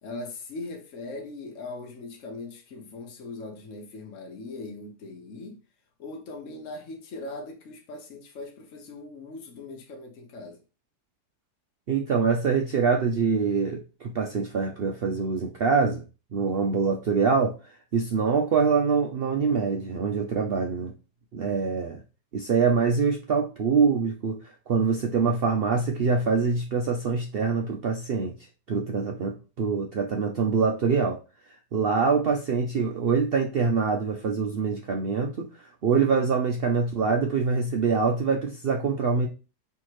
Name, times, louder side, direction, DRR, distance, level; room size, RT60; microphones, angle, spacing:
voice 1, 0.0-5.6 6.0-10.6, left 2 dB, 55° left, 1.1 m, -40 dB
voice 2, 11.9-16.0 16.3-17.5 17.9-20.9 21.3-22.0 22.3-24.4 24.7-28.3 28.7-31.2 31.7-39.3, right 5 dB, 85° right, 0.5 m, -24 dB
4.5 x 3.4 x 3.0 m
omnidirectional pair, 1.7 m